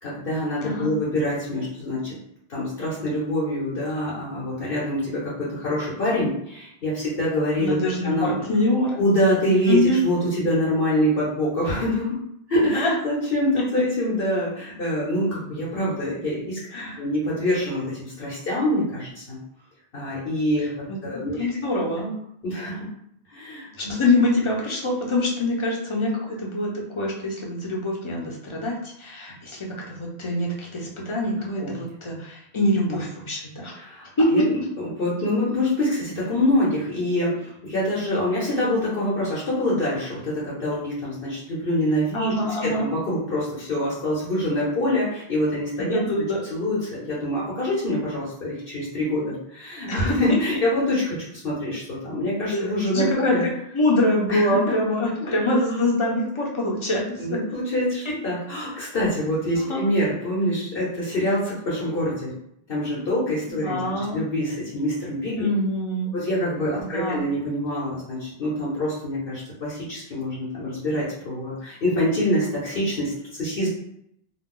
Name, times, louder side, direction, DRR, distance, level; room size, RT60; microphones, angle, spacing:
voice 1, 0.0-2.1 2.5-7.8 8.0-8.3 9.0-12.1 12.5-16.6 17.0-19.4 19.9-20.7 21.0-21.5 22.4-22.8 23.3-23.7 31.6-31.7 32.9-33.0 33.7-34.0 34.3-34.4 35.0-46.0 46.5-46.8 47.1-53.4 54.3-54.6 55.2-55.3 57.2-62.3 62.7-65.5 66.1-73.7, left 1 dB, 65° left, -8 dB, 1.1 m, -25 dB
voice 2, 7.6-9.0 9.7-10.0 12.7-12.9 16.7-17.0 20.6-21.0 21.3-22.1 23.8-33.8 34.2-34.7 42.1-42.9 45.8-46.4 49.9-50.1 52.5-53.4 53.7-57.4 59.7-59.9 63.6-64.2 65.3-66.1 66.8-67.2, left 1 dB, 35° left, -2 dB, 0.7 m, -24 dB
2.4 x 2.2 x 3.7 m, 0.75 s
omnidirectional pair, 1.0 m